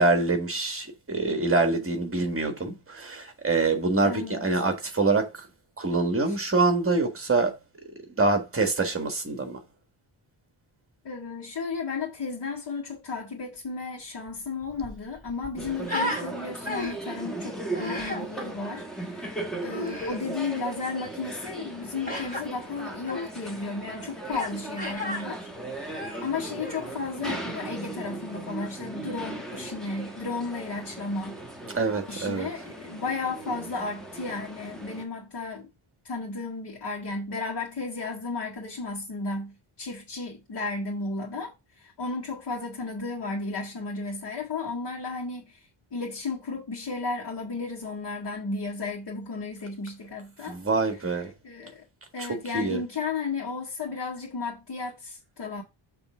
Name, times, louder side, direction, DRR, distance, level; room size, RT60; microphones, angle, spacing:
voice 1, 0.0-5.5 5.8-7.5 8.2-9.6 31.7-32.5 50.4-51.3 52.2-52.3 52.5-52.8, right 3 dB, 25° right, 1.6 m, -25 dB
voice 2, 4.0-4.5 6.3-6.4 11.0-31.5 32.1-35.7 36.0-45.6 45.9-50.6 51.4-51.9 52.1-55.6, left 4 dB, 50° left, 2.0 m, -34 dB
Human voice, 14.3-14.4 14.6-16.2 16.6-17.1 17.7-18.2 19.7-20.2 22.1-22.4 23.0-23.3 24.3-24.5 24.8-25.2 25.8-26.9, left 1 dB, 15° left, 2.8 m, -33 dB
sound 1, 15.6-35.1, right 2 dB, ahead, 1.5 m, -38 dB
6.9 x 3.4 x 6.1 m
wide cardioid pair, 155°, 49 cm